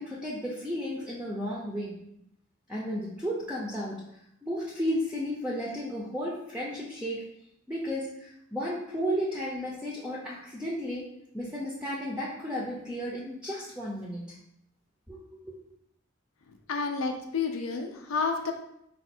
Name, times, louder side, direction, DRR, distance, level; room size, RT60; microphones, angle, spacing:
voice 1, 0.0-2.0 2.7-4.0 4.4-7.2 7.7-11.1 11.3-14.3 15.1-15.2, equal, 5° right, -4 dB, 0.5 m, -33 dB
voice 2, 16.7-18.5, left 4 dB, 90° left, 3 dB, 0.5 m, -30 dB
4.1 x 2.3 x 4.2 m, 0.78 s
head